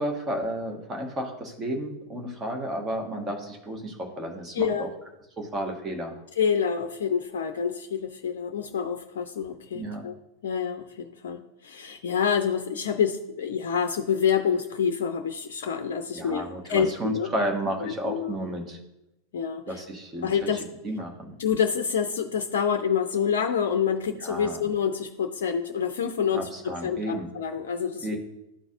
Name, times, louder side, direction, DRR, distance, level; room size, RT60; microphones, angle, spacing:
voice 1, 0.0-4.9 5.4-6.1 9.7-10.0 16.1-18.8 19.7-20.3 20.8-21.4 24.1-24.6 26.3-27.3 28.0-28.2, right 1 dB, 20° right, 2 dB, 1.4 m, -32 dB
voice 2, 4.5-4.9 6.4-10.1 10.4-17.3 17.8-18.4 19.3-19.8 20.2-20.6 21.4-28.2, left 7 dB, 60° left, 6 dB, 0.5 m, -27 dB
11.5 x 4.0 x 2.5 m, 0.90 s
figure-of-eight pair, 90°, 0 cm